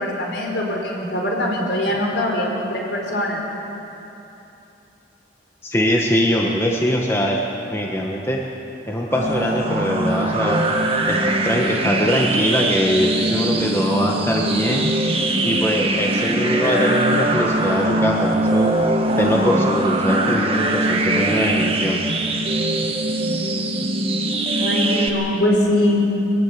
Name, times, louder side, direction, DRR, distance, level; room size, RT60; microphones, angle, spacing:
voice 1, 0.0-3.4 24.6-26.0, left 1 dB, 65° left, -1 dB, 4.7 m, -22 dB
voice 2, 5.6-7.4 7.7-8.4 8.9-10.7 11.1-15.0 15.4-18.7 19.2-22.0, equal, 15° left, -1 dB, 1.4 m, -22 dB
sound 1, 9.1-25.1, right 1 dB, 30° right, 1.6 m, -21 dB
22.5 x 15.5 x 9.7 m, 3.0 s
head